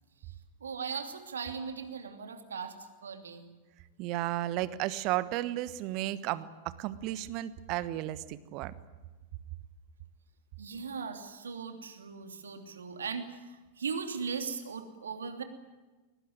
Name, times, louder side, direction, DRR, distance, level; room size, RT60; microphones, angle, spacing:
voice 1, 0.6-3.5 10.6-15.4, right 5 dB, 70° right, 7 dB, 2.8 m, -38 dB
voice 2, 4.0-8.7, right 15 dB, 40° right, 16 dB, 1.2 m, -33 dB
22.5 x 20.5 x 9.3 m, 1.2 s
figure-of-eight pair, 90°, 0 cm